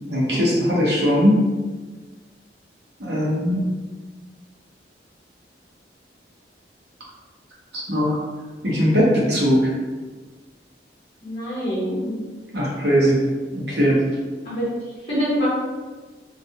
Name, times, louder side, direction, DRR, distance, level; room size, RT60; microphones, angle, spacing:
voice 1, 0.0-1.4 3.0-3.6 7.7-8.2 8.6-9.6 12.5-13.2 13.5-14.0, equal, 65° right, -5 dB, 0.9 m, -19 dB
voice 2, 11.2-12.2 14.4-14.7 15.1-15.5, equal, 35° left, -8 dB, 0.7 m, -25 dB
2.5 x 2.4 x 2.7 m, 1.3 s
head